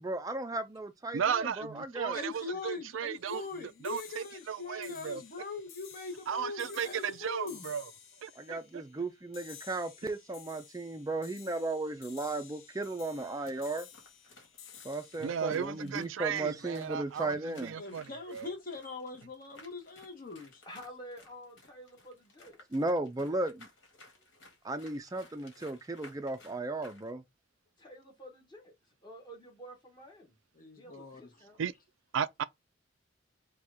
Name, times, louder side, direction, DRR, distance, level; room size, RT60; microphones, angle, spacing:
voice 1, 0.0-2.2 8.4-13.9 14.8-17.7 22.7-23.7 24.6-27.2, right 2 dB, 20° right, 0.4 m, -35 dB
voice 2, 1.1-3.4 3.8-5.2 6.3-7.8 8.2-8.8 15.2-18.5 31.6-31.7 32.1-32.4, right 7 dB, 80° right, 0.4 m, -35 dB
voice 3, 2.1-7.6 17.8-20.6 30.6-31.2, left 3 dB, 45° left, 1.0 m, -41 dB
sound 1, 3.3-16.7, left 8 dB, 80° left, 0.9 m, -54 dB
sound 2, 13.2-27.1, left 2 dB, 65° left, 2.0 m, -58 dB
voice 4, 20.6-22.6 27.8-30.4 30.8-31.6, equal, 20° left, 1.1 m, -50 dB
4.3 x 2.3 x 4.8 m
head